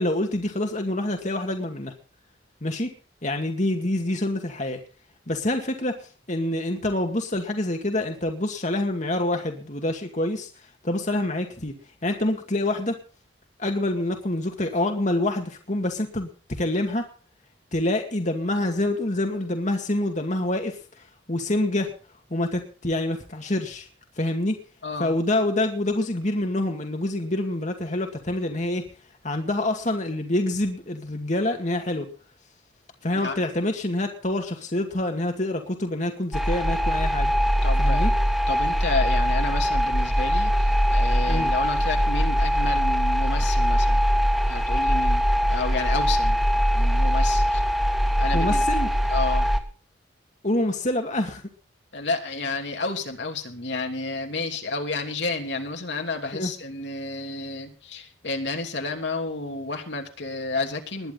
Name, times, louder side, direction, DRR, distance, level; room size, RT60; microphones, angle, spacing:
voice 1, 0.0-1.9 2.6-2.9 3.2-4.8 5.3-6.0 6.3-10.5 10.8-11.7 12.0-13.0 13.6-17.1 17.7-20.8 21.3-21.9 22.3-23.9 24.2-24.6 25.0-28.8 29.2-32.1 33.0-37.3 37.8-38.1 41.3-41.5 48.3-48.9 50.4-51.4 56.3-56.5, left 1 dB, 40° left, 3 dB, 2.2 m, -26 dB
voice 2, 24.8-25.1 33.1-33.4 37.6-38.1 38.5-44.0 44.4-46.4 46.7-47.6 48.2-48.6 49.1-49.5 51.9-61.1, left 3 dB, 70° left, 3 dB, 2.9 m, -31 dB
sound 1, 36.3-49.6, equal, ahead, 2.0 m, -22 dB
21.0 x 10.5 x 4.0 m, 0.38 s
head